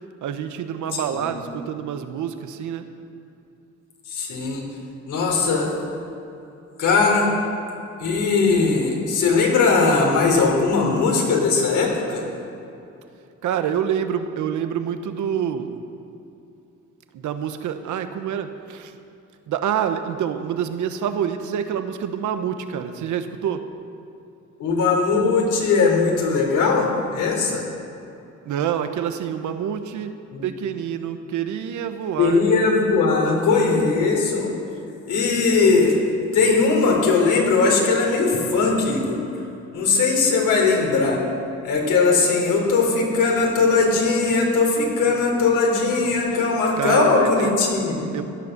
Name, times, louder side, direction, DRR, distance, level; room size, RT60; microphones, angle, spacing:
voice 1, 0.2-2.8 13.4-15.8 17.1-18.9 19.5-23.6 28.4-30.1 30.4-32.4 46.8-47.5 48.1-48.2, right 8 dB, 75° right, 8 dB, 1.2 m, -27 dB
voice 2, 0.9-1.4 4.1-4.6 5.1-5.7 6.8-7.3 8.0-12.2 24.6-27.7 30.3-30.4 32.2-34.5 35.1-35.9 36.3-39.2 39.7-41.2 41.6-48.0, left 4 dB, 75° left, -1 dB, 4.0 m, -19 dB
16.5 x 11.0 x 6.7 m, 2.7 s
cardioid pair, 90°, 30 cm